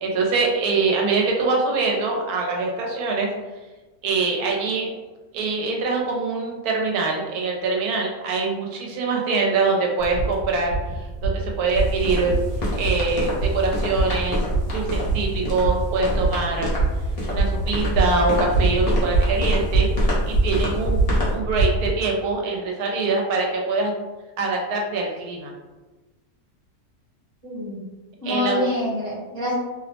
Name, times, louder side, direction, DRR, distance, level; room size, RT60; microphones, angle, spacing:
voice 1, 0.0-3.3 4.0-4.9 5.3-10.7 11.2-12.3 12.7-14.4 14.7-16.7 17.3-19.9 20.2-21.0 21.3-23.9 24.4-25.5 28.3-28.7, right 3 dB, 85° right, 0 dB, 1.1 m, -24 dB
sound 1, 10.0-21.9, right 3 dB, 55° left, 0.9 m, -25 dB
sound 2, 11.7-21.4, equal, 40° left, 0.5 m, -26 dB
voice 2, 27.4-27.8 28.2-29.5, left 1 dB, 40° right, -7 dB, 1.0 m, -26 dB
2.7 x 2.0 x 2.8 m, 1.2 s
omnidirectional pair, 1.6 m